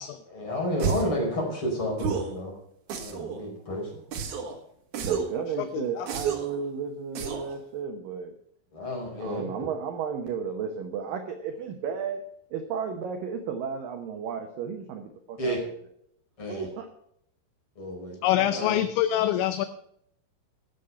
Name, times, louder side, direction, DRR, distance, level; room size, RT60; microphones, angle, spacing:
voice 1, 0.3-2.5 3.0-4.0 8.7-9.7 15.4-15.6 16.4-16.7 17.8-18.8, equal, 30° left, 0 dB, 5.3 m, -31 dB
sound 1, 0.8-1.2 2.0-2.4 2.9-3.4 4.1-4.6 4.9-5.4 6.1-6.6 7.2-7.5, right 6 dB, 55° right, 2.3 m, -31 dB
voice 2, 5.0-8.3 9.2-12.3 12.5-15.6 16.5-16.9, right 6 dB, 90° right, 5 dB, 1.9 m, -33 dB
voice 3, 5.7-6.1 18.2-19.7, left 12 dB, 80° left, 10 dB, 2.9 m, -25 dB
13.0 x 9.2 x 5.7 m, 0.72 s
omnidirectional pair, 5.5 m